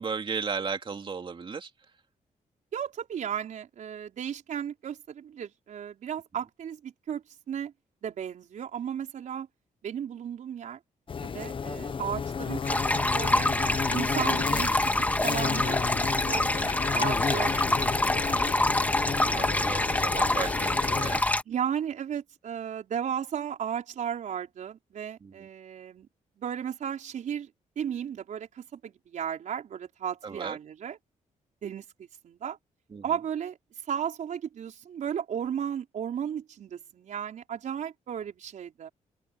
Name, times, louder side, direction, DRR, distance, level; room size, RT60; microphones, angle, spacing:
voice 1, 0.0-1.7 19.3-21.2 25.2-25.5 30.2-30.6 32.9-33.0, right 5 dB, 40° right, 2.4 m, -35 dB
voice 2, 2.7-7.7 8.0-9.5 9.8-10.8 11.2-14.8 15.2-18.4 19.1-19.6 21.3-26.1 26.4-27.5 27.8-31.0 31.6-32.6 33.0-33.6 33.9-38.9, right 8 dB, 65° right, 4.7 m, -35 dB
sound 1, 11.1-21.2, left 6 dB, 40° left, 0.9 m, -33 dB
sound 2, 12.6-21.4, left 1 dB, 10° left, 2.4 m, -26 dB
open air
cardioid pair, 100°, 14 cm